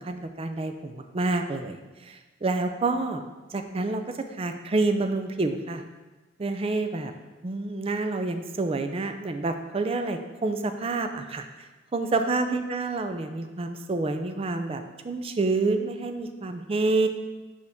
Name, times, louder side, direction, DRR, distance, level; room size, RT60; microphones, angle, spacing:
voice 1, 0.0-3.2 3.5-5.8 6.4-7.1 7.4-17.1, right 3 dB, 30° right, 7 dB, 0.4 m, -28 dB
6.4 x 5.0 x 3.5 m, 1.2 s
head